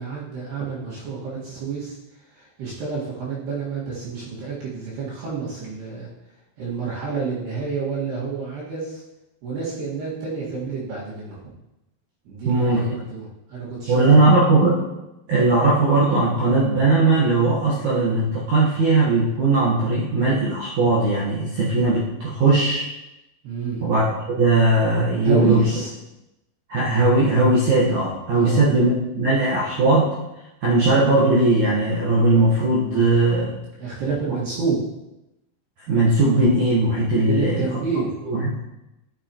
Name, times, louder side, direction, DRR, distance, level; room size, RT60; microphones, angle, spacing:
voice 1, 0.0-2.0 2.3-6.1 6.6-9.0 9.4-11.5 12.3-14.0 14.4-14.5 23.4-23.8 25.2-25.9 28.3-28.6 33.8-34.8 37.3-38.2, right 5 dB, 60° right, -8 dB, 3.6 m, -29 dB
voice 2, 12.4-12.8 13.9-14.8 15.3-22.9 23.8-25.6 26.7-30.1 30.6-33.5 35.9-37.7 38.3-38.6, right 2 dB, 85° right, -7 dB, 1.6 m, -19 dB
13.0 x 7.0 x 3.0 m, 0.94 s
omnidirectional pair, 5.7 m